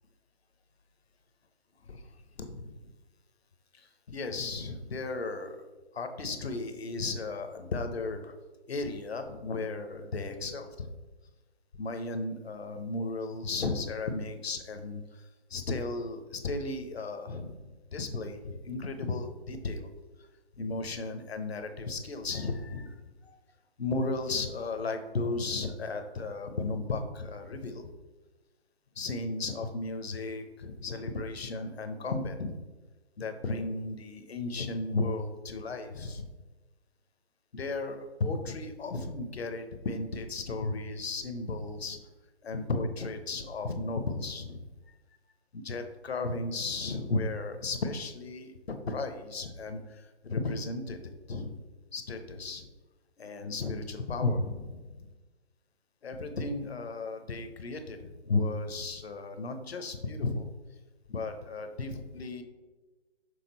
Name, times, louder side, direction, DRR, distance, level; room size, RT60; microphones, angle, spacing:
voice 1, 2.4-2.9 3.7-5.6 5.9-8.3 8.7-10.9 11.7-19.9 20.6-23.4 23.8-27.9 29.0-32.6 33.2-36.3 37.5-42.0 42.4-44.6 45.5-51.6 51.9-52.7 53.2-55.0 56.0-60.5 61.1-62.4, left 3 dB, 65° left, 7 dB, 0.9 m, -34 dB
6.7 x 3.6 x 4.0 m, 1.2 s
figure-of-eight pair, 145°, 33 cm